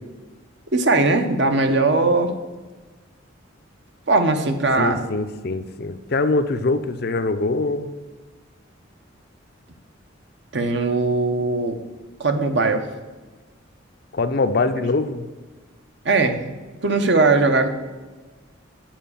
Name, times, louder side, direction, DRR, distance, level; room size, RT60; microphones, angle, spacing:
voice 1, 0.7-2.3 4.1-5.0 10.5-11.8 12.2-12.8 16.0-16.5 16.8-17.7, right 3 dB, 60° right, 7 dB, 0.8 m, -19 dB
voice 2, 4.8-7.9 14.1-15.3, left 3 dB, 50° left, 9 dB, 0.5 m, -23 dB
7.5 x 4.9 x 6.8 m, 1.3 s
head